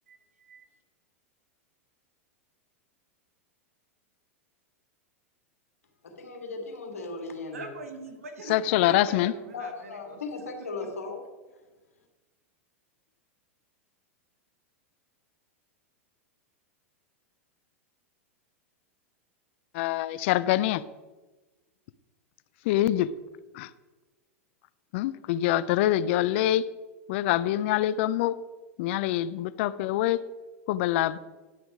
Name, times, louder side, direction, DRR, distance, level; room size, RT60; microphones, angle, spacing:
voice 1, 0.1-0.7 7.5-10.2 10.8-10.9, right 3 dB, 80° right, 6 dB, 1.4 m, -43 dB
voice 2, 6.0-7.7 9.5-11.2, left 3 dB, 85° left, 3 dB, 1.7 m, -37 dB
voice 3, 8.5-9.3 19.7-20.8 22.7-23.2 23.5-23.7 24.9-26.7 27.1-28.4 28.8-30.2 30.7-31.2, left 13 dB, 55° left, 17 dB, 0.4 m, -25 dB
10.0 x 6.0 x 4.9 m, 1.2 s
hypercardioid pair, 100°, 8 cm